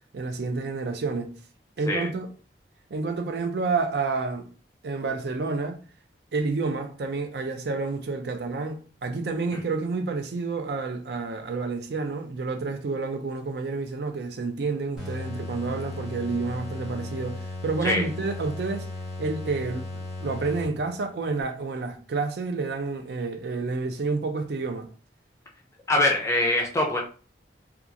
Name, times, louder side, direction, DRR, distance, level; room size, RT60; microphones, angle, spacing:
voice 1, 0.1-1.4 1.8-2.3 2.9-4.5 4.8-5.8 6.3-18.9 19.2-24.9, right 3 dB, 60° right, 0.4 m, -29 dB
sound 1, 15.0-21.1, left 2 dB, 5° right, 1.0 m, -36 dB
voice 2, 25.9-27.0, left 1 dB, 15° left, 0.4 m, -23 dB
2.9 x 2.3 x 2.5 m
head